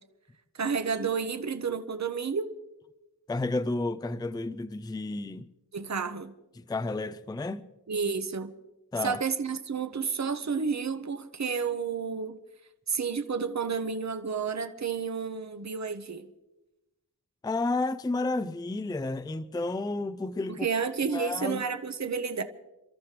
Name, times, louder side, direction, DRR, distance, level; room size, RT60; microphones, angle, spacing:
voice 1, 0.6-2.5 5.7-6.3 7.9-8.5 9.0-12.4 12.9-16.3 20.5-22.4, right 5 dB, 45° right, 0.9 m, -31 dB
voice 2, 3.3-5.5 6.6-7.7 8.9-9.2 17.4-20.7 21.1-21.6, left 2 dB, 10° left, 0.4 m, -31 dB
29.0 x 13.5 x 3.3 m
wide cardioid pair, 95°, 40 cm